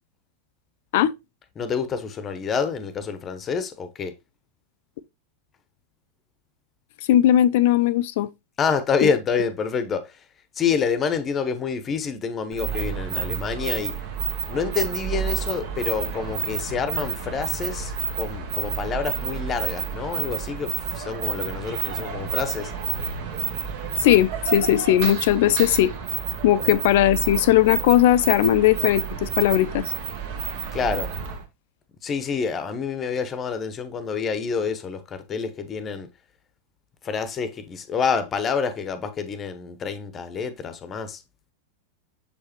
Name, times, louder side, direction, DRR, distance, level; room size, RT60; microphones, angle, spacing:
voice 1, 1.6-4.1 8.6-10.2 10.6-13.9 14.5-22.7 26.6-26.8 30.7-31.1 32.0-36.1 37.0-41.2, left 5 dB, 25° left, 0.9 m, -27 dB
voice 2, 7.1-8.3 9.0-9.1 24.0-25.9 26.4-29.8, left 12 dB, 50° left, 0.4 m, -18 dB
sound 1, 12.5-31.4, right 7 dB, 50° right, 1.5 m, -30 dB
7.0 x 4.8 x 2.9 m
figure-of-eight pair, 90°, 0 cm